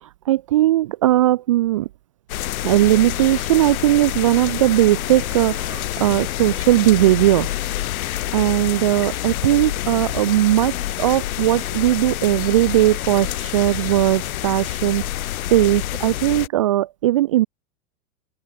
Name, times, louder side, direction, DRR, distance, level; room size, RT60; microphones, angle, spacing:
voice 1, 0.0-1.9 2.6-7.5 8.3-17.5, right 15 dB, 25° right, 0.4 m, -18 dB
sound 1, 2.3-16.5, left 14 dB, 65° left, 3.1 m, -27 dB
open air
supercardioid pair, 170°, 45 cm